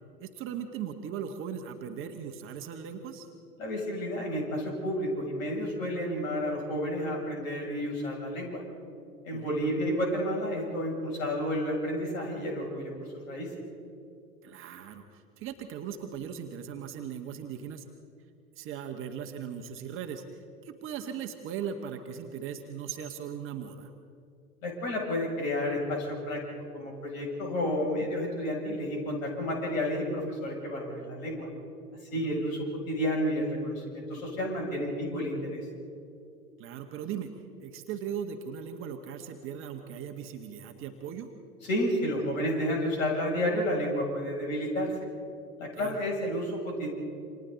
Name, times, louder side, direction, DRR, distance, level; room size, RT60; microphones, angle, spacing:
voice 1, 0.2-3.3 9.3-9.6 14.4-17.9 18.5-23.9 32.1-32.4 36.6-37.3 37.6-41.3 45.7-46.0, right 8 dB, 25° right, 4 dB, 1.4 m, -38 dB
voice 2, 3.6-8.6 9.2-12.9 13.3-13.5 24.6-26.4 26.7-31.5 32.1-35.7 41.6-44.9 45.6-46.9, equal, 55° left, -1 dB, 7.5 m, -31 dB
29.0 x 26.5 x 4.1 m, 2.6 s
figure-of-eight pair, 100°, 47 cm